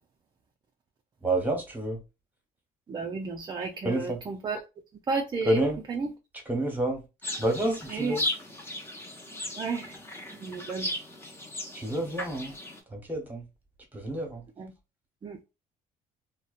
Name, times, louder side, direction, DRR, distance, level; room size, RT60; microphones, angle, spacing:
voice 1, 1.2-2.0 3.8-4.2 5.5-5.8 6.5-7.0 7.4-8.2 11.7-12.5 12.9-13.4 13.9-14.4, right 1 dB, 10° right, 1.1 m, -28 dB
voice 2, 2.9-4.6 5.1-5.6 5.9-6.1 7.9-8.2 9.6-10.0 10.3-10.9 14.6-14.7 15.2-15.5, right 4 dB, 25° right, 0.4 m, -32 dB
sound 1, 7.2-12.8, left 1 dB, 15° left, 0.8 m, -36 dB
2.7 x 2.2 x 2.4 m
cardioid pair, 110°, 17 cm